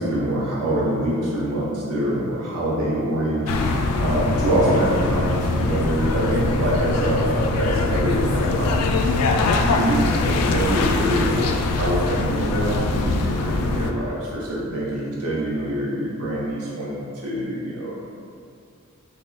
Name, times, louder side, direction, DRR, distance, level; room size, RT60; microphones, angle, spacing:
voice 1, 0.0-8.8 9.2-17.9, right 1 dB, 80° right, -6 dB, 0.6 m, -25 dB
sound 1, 3.5-13.9, left 3 dB, 85° left, 0.3 m, -22 dB
3.4 x 2.2 x 3.7 m, 2.4 s
head